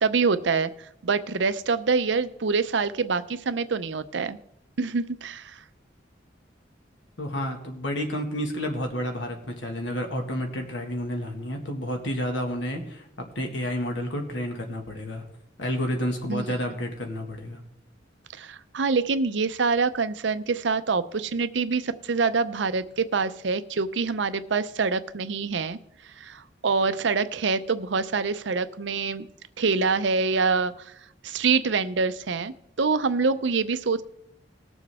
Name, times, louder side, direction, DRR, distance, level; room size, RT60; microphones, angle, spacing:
voice 1, 0.0-0.7 1.0-4.4 4.8-5.6 16.3-16.5 18.3-25.8 26.2-29.3 29.6-30.9 31.2-34.0, right 4 dB, 70° right, 12 dB, 0.6 m, -25 dB
voice 2, 7.2-15.2 15.6-17.6, equal, 80° left, 3 dB, 1.8 m, -30 dB
20.0 x 7.1 x 3.6 m, 0.77 s
head